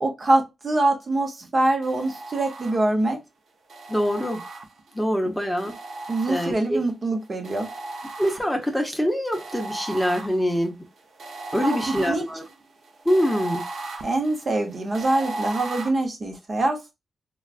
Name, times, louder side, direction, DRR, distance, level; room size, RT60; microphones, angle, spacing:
voice 1, 0.0-3.2 6.1-7.7 11.6-11.8 12.1-12.2 14.0-16.9, right 2 dB, 45° right, 0.8 m, -24 dB
sound 1, 1.8-3.1 3.7-5.0 5.6-6.9 7.4-8.8 9.3-15.9, right 2 dB, 75° right, 0.7 m, -37 dB
voice 2, 3.9-4.4 4.9-5.7 6.3-6.8 8.2-10.8 11.5-12.4 13.0-13.6, equal, 5° left, 0.8 m, -24 dB
3.4 x 2.3 x 2.3 m
cardioid pair, 80°, 0 cm